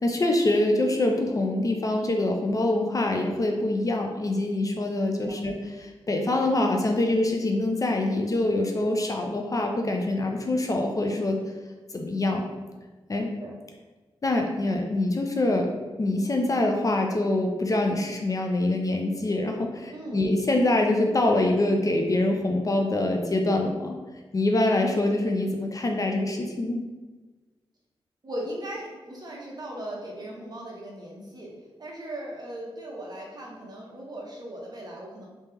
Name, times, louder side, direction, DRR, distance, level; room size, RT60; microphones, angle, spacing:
voice 1, 0.0-11.4 11.9-12.5 13.1-13.3 14.2-15.7 16.0-24.0 24.3-26.8, left 2 dB, 35° left, 2 dB, 0.5 m, -25 dB
voice 2, 19.9-20.3 28.2-31.5 31.8-35.3, right 1 dB, 45° right, -3 dB, 1.0 m, -38 dB
3.2 x 2.8 x 3.4 m, 1.3 s
cardioid pair, 80°, 10 cm